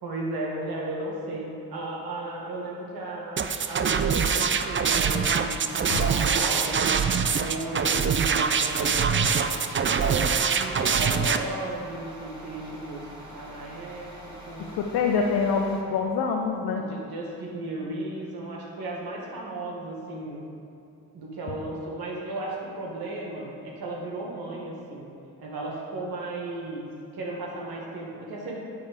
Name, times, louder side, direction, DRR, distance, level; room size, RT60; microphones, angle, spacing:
voice 1, 0.0-6.8 7.4-9.5 9.8-13.0 13.3-14.7 16.8-20.4 21.1-25.1 25.4-26.9 27.1-28.6, right 2 dB, 75° right, -3 dB, 1.7 m, -35 dB
sound 1, 3.4-11.4, right 6 dB, 35° right, 0.5 m, -24 dB
sound 2, 5.6-15.8, equal, 15° right, 2.0 m, -45 dB
voice 2, 14.6-16.8, left 5 dB, 90° left, 1 dB, 0.6 m, -26 dB
9.6 x 3.5 x 6.6 m, 2.5 s
supercardioid pair, 45°, 37 cm